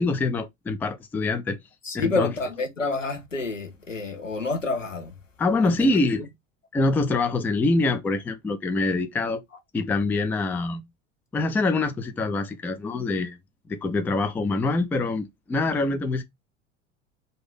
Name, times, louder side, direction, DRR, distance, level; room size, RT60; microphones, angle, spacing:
voice 1, 0.0-1.6 1.9-2.3 5.4-6.2 6.7-9.4 9.7-10.8 11.3-13.4 13.7-16.2, left 3 dB, 5° left, 0.3 m, -25 dB
voice 2, 1.8-5.1 5.6-6.0, left 3 dB, 90° left, 0.9 m, -29 dB
4.0 x 2.5 x 3.7 m
figure-of-eight pair, 75°, 37 cm